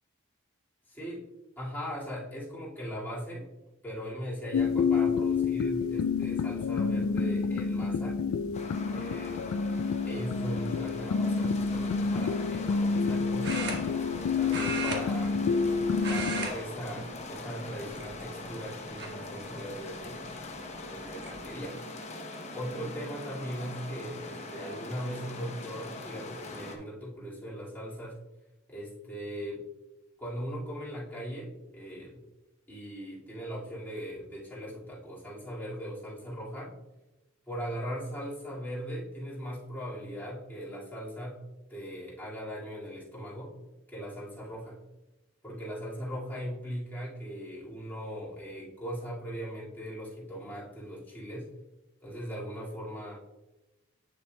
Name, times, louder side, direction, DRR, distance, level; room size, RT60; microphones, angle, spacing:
voice 1, 0.9-1.3 1.6-3.5 3.8-8.2 8.9-9.5 10.1-13.8 14.2-20.3 20.9-21.8 22.5-28.2 28.7-29.7 30.2-32.2 32.7-36.7 37.5-41.4 41.7-43.6 43.9-44.8 45.4-51.5 52.0-53.1, equal, 10° left, -8 dB, 2.0 m, -39 dB
sound 1, 4.5-16.5, left 5 dB, 75° left, 0.3 m, -29 dB
sound 2, 8.5-26.8, left 2 dB, 35° left, 0.8 m, -42 dB
sound 3, 11.5-11.8 13.4-14.2 14.5-15.7 16.0-16.5 16.8-17.1 17.9-18.4 19.0-19.1 20.5-20.6 20.9-21.3, right 3 dB, 55° right, 1.2 m, -35 dB
8.2 x 6.9 x 2.2 m, 1.0 s
head